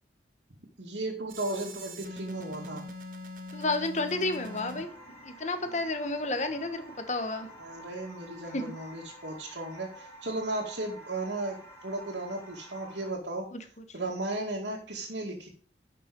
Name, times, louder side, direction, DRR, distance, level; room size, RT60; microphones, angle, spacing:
voice 1, 0.8-2.8 7.6-13.5 13.9-15.5, right 2 dB, 85° right, -3 dB, 2.3 m, -35 dB
sound 1, 1.3-4.8, left 1 dB, 50° right, 1.5 m, -42 dB
voice 2, 3.5-4.9 5.2-7.5 8.5-8.7 13.5-13.6, left 2 dB, 40° left, 8 dB, 1.3 m, -31 dB
sound 2, 3.9-13.1, right 1 dB, 15° left, 3.4 m, -50 dB
11.5 x 6.0 x 5.3 m, 0.43 s
head